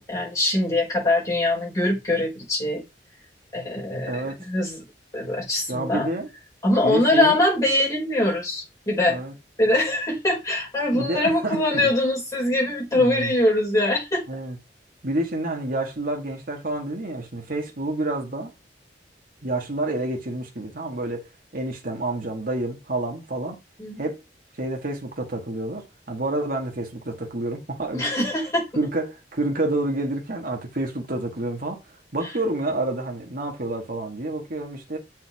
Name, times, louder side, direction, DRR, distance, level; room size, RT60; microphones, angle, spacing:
voice 1, 0.0-2.8 3.5-4.1 4.4-4.8 5.1-6.1 6.6-9.2 9.6-14.2 23.8-24.0 27.9-28.7, left 1 dB, 20° left, 5.5 m, -23 dB
voice 2, 4.1-4.4 5.7-6.3 6.8-7.4 9.1-9.3 10.9-11.9 12.9-13.3 14.3-14.6 15.0-18.5 19.4-23.6 24.0-24.2 24.5-28.1 28.8-31.8 32.1-35.0, right 2 dB, 55° right, 1.8 m, -28 dB
8.0 x 5.6 x 3.5 m
head